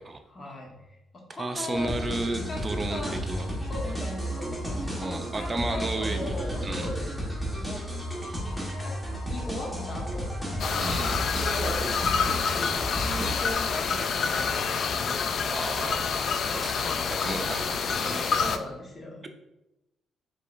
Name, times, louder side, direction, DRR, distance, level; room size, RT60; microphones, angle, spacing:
voice 1, 0.3-1.9 2.5-2.6 2.9-3.2 3.6-7.8 8.7-9.0 9.3-10.3 11.4-11.9 12.3-16.2 18.3-19.3, left 1 dB, 35° left, 0 dB, 1.2 m, -39 dB
voice 2, 1.3-3.5 5.0-6.3 6.6-6.9 10.8-11.3 15.5-18.5, right 2 dB, 25° right, 7 dB, 0.5 m, -33 dB
sound 1, 1.7-13.3, equal, 5° left, 1.4 m, -33 dB
sound 2, 10.6-18.6, left 5 dB, 60° left, 0.3 m, -27 dB
4.8 x 3.8 x 2.5 m, 0.95 s
cardioid pair, 90°, 0 cm